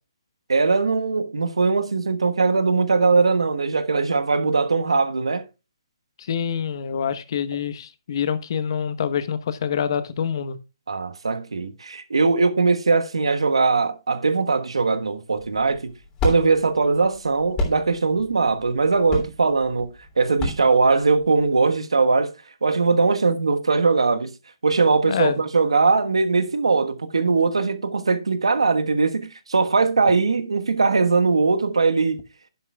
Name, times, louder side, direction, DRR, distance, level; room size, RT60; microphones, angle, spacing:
voice 1, 0.5-5.4 10.9-15.9 16.2-22.3 22.6-24.3 24.6-32.2, right 4 dB, 90° right, 1.3 m, -20 dB
voice 2, 6.2-10.6 25.1-25.4, left 7 dB, 55° left, 1.1 m, -26 dB
sound 1, 15.4-21.6, left 2 dB, 20° left, 3.1 m, -30 dB
11.0 x 10.5 x 2.3 m
hypercardioid pair, 150°, 3 cm